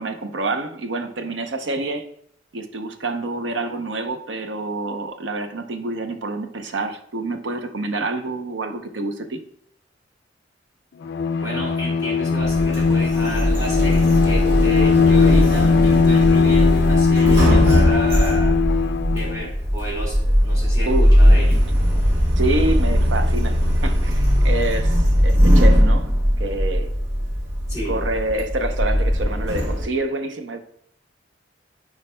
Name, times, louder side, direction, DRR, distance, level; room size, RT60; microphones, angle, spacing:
voice 1, 0.0-2.0 2.5-9.4 20.9-21.1 22.3-26.1 26.4-26.9 27.9-30.6, right 2 dB, 90° right, 7 dB, 0.7 m, -27 dB
Bowed string instrument, 11.0-19.5, left 5 dB, 65° left, 0.3 m, -19 dB
voice 2, 11.4-18.6 19.1-21.6 27.7-28.0, equal, 20° right, -6 dB, 2.1 m, -31 dB
Sliding door, 12.4-29.8, equal, 70° right, 1.5 m, -19 dB
9.4 x 4.7 x 2.2 m, 0.68 s
head